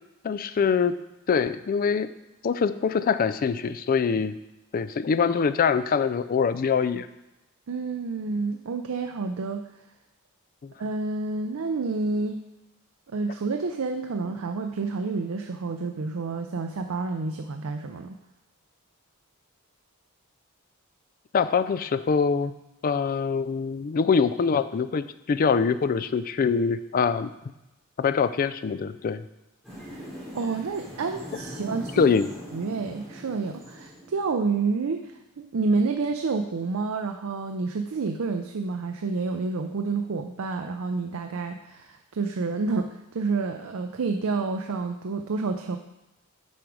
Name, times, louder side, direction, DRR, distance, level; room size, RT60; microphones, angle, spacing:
voice 1, 0.2-0.9 1.3-2.1 2.4-4.3 4.7-7.1 10.6-10.7 21.3-22.5 22.8-27.3 28.0-29.2 32.0-32.3, left 5 dB, 40° left, 13 dB, 0.3 m, -24 dB
voice 2, 7.7-9.6 10.8-12.4 13.1-18.2 30.3-32.1 32.5-45.8, right 4 dB, 75° right, 5 dB, 0.5 m, -29 dB
sound 1, 29.6-34.5, equal, ahead, 2.6 m, -41 dB
8.7 x 4.9 x 4.7 m, 0.97 s
head